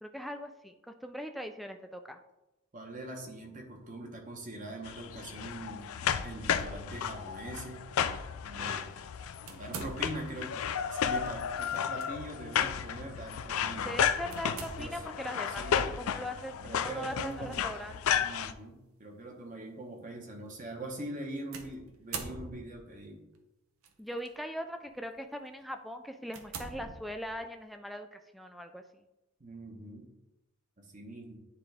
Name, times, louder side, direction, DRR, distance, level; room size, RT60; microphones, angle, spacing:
voice 1, 0.0-2.2 13.8-18.2 24.0-28.8, equal, ahead, 6 dB, 0.3 m, -40 dB
voice 2, 2.7-7.8 8.5-8.9 9.5-14.0 14.8-15.0 15.5-16.0 16.6-17.7 18.2-23.2 29.4-30.1 30.8-31.4, right 1 dB, 35° right, 1 dB, 1.0 m, -43 dB
sound 1, 4.8-18.5, left 8 dB, 75° left, 0.4 m, -33 dB
sound 2, 9.5-10.5 11.7-12.1 12.6-12.7 14.3-15.2 17.3-17.6 18.4-18.5 21.5-22.9 23.8-24.3 24.9-25.1 25.6-25.7 26.3-27.5, right 4 dB, 75° right, 0.8 m, -43 dB
9.6 x 3.5 x 3.4 m, 0.96 s
head